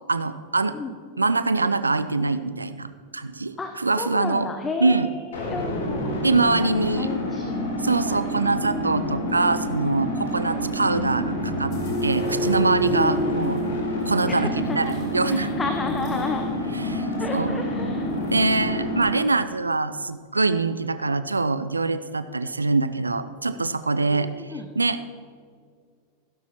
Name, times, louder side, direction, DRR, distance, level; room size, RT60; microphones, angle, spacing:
voice 1, 0.1-0.8 1.2-4.5 4.8-5.1 6.2-7.1 7.8-13.6 14.1-15.5 16.9-17.6 18.3-24.3 24.8-25.1, right 3 dB, 80° right, 12 dB, 0.5 m, -24 dB
voice 2, 3.6-6.2 6.6-7.5 8.1-8.2 10.4-10.7 12.9-13.6 14.3-15.0 15.3-16.5 17.2-18.1 24.1-24.7, left 4 dB, 15° left, 4 dB, 0.7 m, -32 dB
sound 1, 5.3-19.0, left 1 dB, 65° left, 2.8 m, -28 dB
sound 2, 10.1-18.8, right 1 dB, 35° left, 3.3 m, -33 dB
Bowed string instrument, 10.8-15.7, right 3 dB, 80° left, 2.3 m, -42 dB
15.5 x 12.5 x 3.0 m, 2.1 s
figure-of-eight pair, 90°, 0 cm